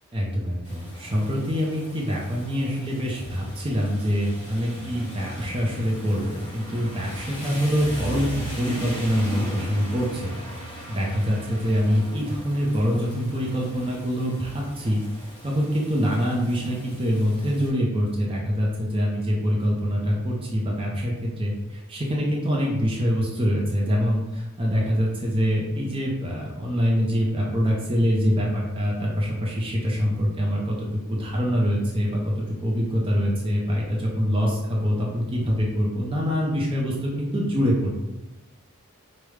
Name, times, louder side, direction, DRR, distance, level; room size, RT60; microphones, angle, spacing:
voice 1, 0.1-37.9, equal, 25° right, -3 dB, 0.6 m, -25 dB
Rain, 0.6-17.7, equal, 20° left, 1.3 m, -39 dB
4.9 x 2.2 x 3.2 m, 1.1 s
head